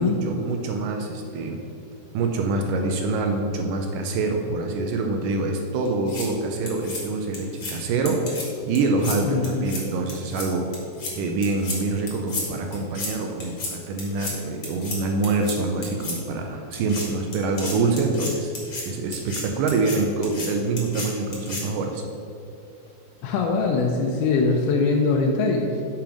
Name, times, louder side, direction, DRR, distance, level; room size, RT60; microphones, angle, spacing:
voice 1, 0.0-1.6 2.1-8.4 8.7-10.7 11.2-18.5 18.9-22.0, right 3 dB, 80° right, 3 dB, 1.9 m, -25 dB
sound 1, 5.9-6.2 6.7-7.0 7.3-7.7 8.1-8.4 8.7-9.2 9.4-9.8 10.1-10.4 10.7-11.1 11.4-11.8 12.1-12.4 12.7-13.1 13.4-13.7 14.0-14.3 14.6-15.0 15.2-15.5 15.8-16.2 16.7-17.0 17.3-18.8 19.1-19.4 19.7-20.0 20.2-20.5 20.8-21.1 21.3-21.6, left 3 dB, 45° left, 1.6 m, -32 dB
voice 2, 9.2-9.7 23.2-25.8, left 4 dB, 90° left, 0 dB, 2.6 m, -22 dB
7.0 x 5.8 x 5.0 m, 2.6 s
omnidirectional pair, 4.3 m